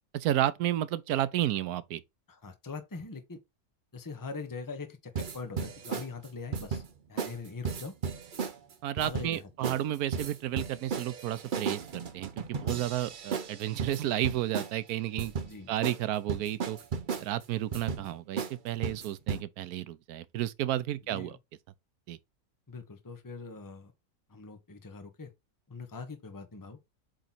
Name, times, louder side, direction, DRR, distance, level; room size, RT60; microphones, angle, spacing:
voice 1, 0.1-2.0 8.8-15.3 15.7-16.8 17.2-21.4 22.1-22.2, right 13 dB, 80° right, 1.1 m, -32 dB
voice 2, 2.3-3.4 3.9-6.8 7.1-7.9 9.0-9.8 12.6-12.8 15.4-15.7 21.1-21.4 22.7-23.9 24.3-25.3 25.7-26.8, left 4 dB, 15° left, 0.9 m, -42 dB
sound 1, 5.2-6.1 6.5-6.9 7.2-7.4 7.6-8.5 9.0-9.4 9.6-9.8 10.1-14.8 15.2-15.5 15.8-16.0 16.3-17.3 17.7-18.0 18.4-18.5 18.8-19.4, right 6 dB, 45° right, 0.7 m, -34 dB
7.8 x 3.0 x 4.1 m
omnidirectional pair, 1.6 m